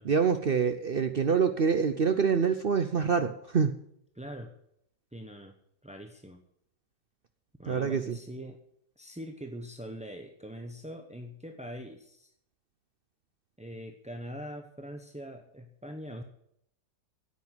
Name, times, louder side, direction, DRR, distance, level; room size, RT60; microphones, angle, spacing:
voice 1, 0.0-3.7 7.7-8.2, right 6 dB, 60° right, 9 dB, 0.5 m, -26 dB
voice 2, 4.1-4.5 5.1-6.4 7.6-8.6 9.0-12.3 13.6-16.2, equal, 10° right, 4 dB, 0.4 m, -43 dB
10.0 x 8.4 x 9.3 m, 0.72 s
omnidirectional pair, 1.9 m